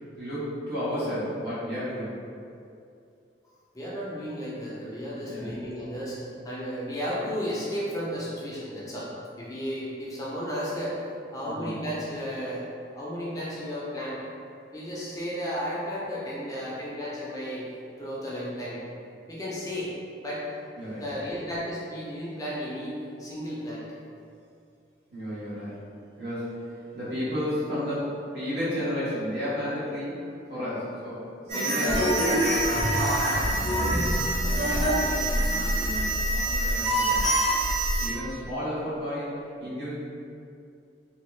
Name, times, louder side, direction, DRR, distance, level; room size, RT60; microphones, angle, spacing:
voice 1, 0.2-2.2 5.1-5.6 11.4-11.7 20.8-21.2 25.1-25.8 26.2-26.5 26.9-30.2 30.5-33.5 33.9-34.1 34.4-37.2 37.9-39.3 39.6-39.9, equal, 65° right, -10 dB, 1.1 m, -33 dB
voice 2, 3.7-9.1 9.4-11.0 11.3-12.6 13.0-14.2 14.7-17.7 18.0-18.8 19.3-19.9 20.2-20.5 21.0-23.9, equal, 20° left, -7 dB, 0.4 m, -33 dB
sound 1, 31.5-38.1, right 1 dB, 35° right, 0.9 m, -25 dB
2.7 x 2.3 x 3.1 m, 2.5 s
head